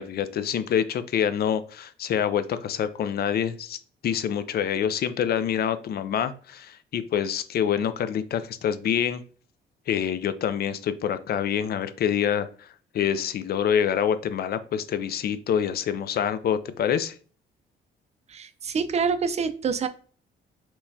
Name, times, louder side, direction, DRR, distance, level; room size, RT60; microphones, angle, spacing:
voice 1, 0.0-3.8 4.0-9.2 9.9-12.7 12.9-17.1, left 8 dB, 55° left, 12 dB, 0.4 m, -26 dB
voice 2, 18.3-19.9, right 5 dB, 35° right, 11 dB, 0.4 m, -26 dB
4.5 x 2.2 x 2.7 m, 0.42 s
cardioid pair, 90°, 20 cm